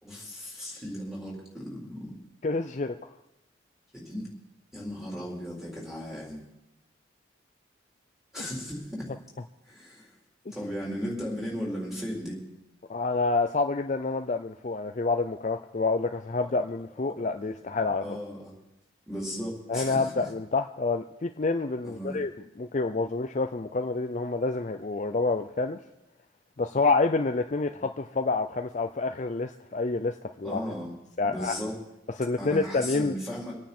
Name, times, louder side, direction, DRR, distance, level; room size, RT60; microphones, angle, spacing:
voice 1, 0.0-2.1 3.9-4.3 4.7-6.4 8.3-9.1 9.7-10.1 10.5-12.4 18.0-18.5 19.1-20.0 21.8-22.2 30.4-30.9 31.3-31.8 32.4-33.5, equal, ahead, -5 dB, 4.3 m, -36 dB
voice 2, 2.4-3.0 8.4-8.5 12.9-18.2 19.7-22.3 22.6-25.8 26.6-30.6 31.2-31.5 32.1-33.1, left 3 dB, 40° left, 6 dB, 0.5 m, -28 dB
25.5 x 9.3 x 4.4 m, 0.91 s
head